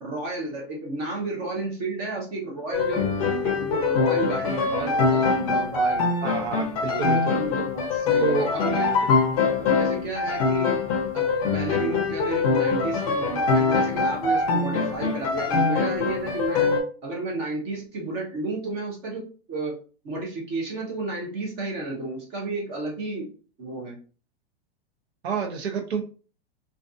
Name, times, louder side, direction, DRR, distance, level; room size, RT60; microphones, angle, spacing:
voice 1, 0.0-3.1 3.4-6.1 6.9-9.1 9.3-10.8 11.1-16.7 17.0-19.8 20.0-23.3 23.6-24.0, right 2 dB, 25° right, -1 dB, 0.6 m, -32 dB
sound 1, 2.7-16.8, left 4 dB, 35° left, 0.5 m, -23 dB
voice 2, 6.2-7.4 8.2-8.5 25.2-26.0, right 5 dB, 85° right, 3 dB, 0.7 m, -28 dB
2.4 x 2.3 x 2.5 m, 0.38 s
supercardioid pair, 160°, 31 cm